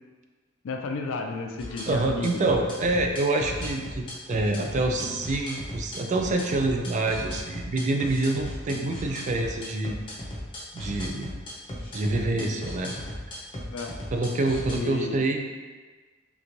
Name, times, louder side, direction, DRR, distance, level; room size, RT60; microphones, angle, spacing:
voice 1, 0.6-2.6 13.7-14.0 14.7-15.2, left 3 dB, 75° left, 3 dB, 0.4 m, -33 dB
sound 1, 1.6-14.8, left 1 dB, 25° left, 0.6 m, -36 dB
voice 2, 1.9-10.0 10.7-11.3 11.9-13.0 14.1-15.4, right 2 dB, 40° right, 3 dB, 0.3 m, -26 dB
3.3 x 3.0 x 2.6 m, 1.4 s
head